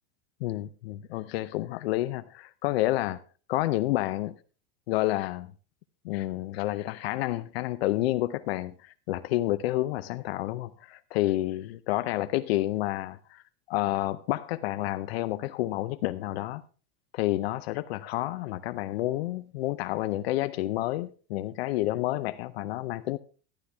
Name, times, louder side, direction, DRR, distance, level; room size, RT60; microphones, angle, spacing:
voice 1, 0.4-3.2 3.5-4.3 4.9-5.5 6.0-13.4 13.7-16.6 17.1-23.2, left 16 dB, 80° left, 0.6 m, -29 dB
12.0 x 11.5 x 3.4 m
supercardioid pair, 180°, 30 cm